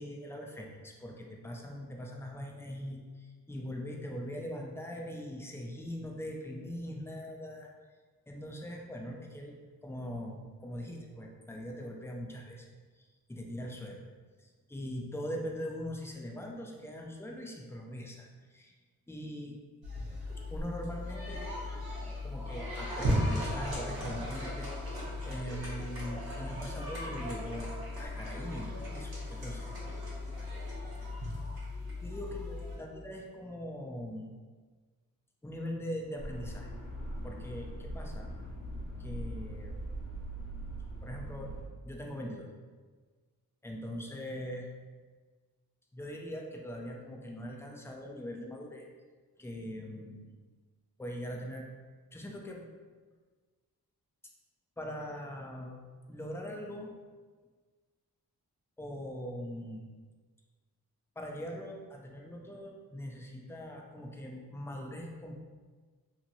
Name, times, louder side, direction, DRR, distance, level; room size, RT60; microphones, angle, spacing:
voice 1, 0.0-7.7 8.3-9.5 9.8-14.0 14.4-18.7 19.1-19.6 20.5-21.4 22.2-24.7 25.3-27.7 28.0-29.7 30.0-30.1 32.0-34.3 35.4-36.7 37.2-38.3 39.0-39.7 41.0-41.5 41.8-42.5 43.6-44.7 45.9-48.9 49.4-50.4 51.0-51.7 52.1-52.6 54.8-55.8 56.1-56.9 58.8-59.9 61.2-65.4, equal, 5° left, 0 dB, 0.4 m, -41 dB
sound 1, 19.8-32.7, left 1 dB, 75° right, 1.0 m, -37 dB
sound 2, 36.2-41.7, right 1 dB, 60° left, 0.8 m, -41 dB
2.8 x 2.8 x 2.6 m, 1.4 s
cardioid pair, 60°, 37 cm